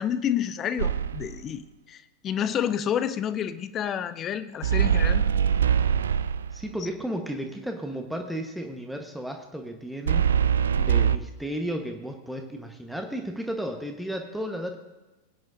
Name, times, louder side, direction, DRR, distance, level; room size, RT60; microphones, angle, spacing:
voice 1, 0.0-1.6 1.9-5.2, left 9 dB, 30° left, 13 dB, 0.6 m, -29 dB
sound 1, 0.8-1.4 4.6-6.7 10.1-11.2, right 8 dB, 65° right, 0.4 m, -23 dB
voice 2, 6.5-10.3 10.8-14.8, equal, ahead, 3 dB, 1.1 m, -33 dB
19.5 x 9.6 x 2.6 m, 1.1 s
figure-of-eight pair, 90°, 0 cm